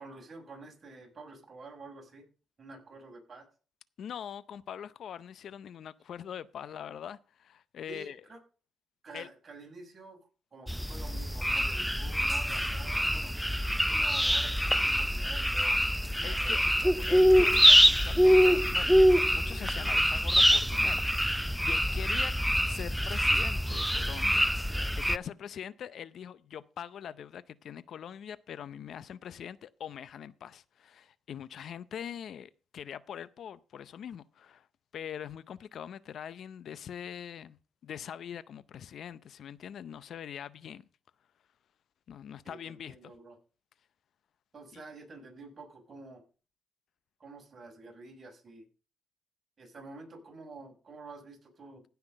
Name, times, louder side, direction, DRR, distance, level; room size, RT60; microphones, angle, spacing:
voice 1, 0.0-2.2 2.6-3.5 7.9-8.4 9.0-10.2 10.5-13.3 13.8-15.8 16.1-17.2 42.4-43.4 44.5-46.2 47.2-48.6 49.6-51.8, right 3 dB, 35° right, 6.5 m, -49 dB
voice 2, 4.0-8.2 9.1-9.3 16.2-16.6 17.1-22.3 22.6-34.7 34.9-37.6 37.8-40.9 42.1-43.1 44.7-44.8, left 9 dB, 65° left, 0.6 m, -43 dB
sound 1, 10.7-25.2, equal, ahead, 0.4 m, -25 dB
16.0 x 5.9 x 5.3 m
cardioid pair, 90°, 0 cm